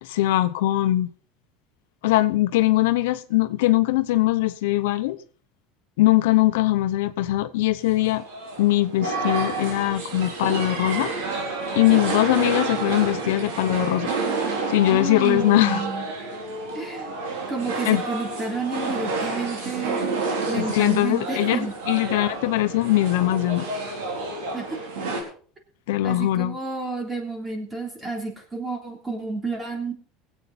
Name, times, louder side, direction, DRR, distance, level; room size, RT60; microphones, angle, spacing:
voice 1, 0.0-1.1 2.0-5.2 6.0-8.2 8.6-11.1 11.7-14.1 14.7-15.8 17.8-18.0 20.6-23.7 25.9-26.6, left 15 dB, 90° left, 0.8 m, -21 dB
sound 1, 8.0-25.2, right 3 dB, 90° right, 4.3 m, -29 dB
voice 2, 14.9-16.0 16.7-20.0 20.5-21.7 24.5-24.8 26.0-29.9, right 3 dB, 15° right, 3.3 m, -30 dB
21.0 x 8.2 x 4.2 m
supercardioid pair, 135°, 0 cm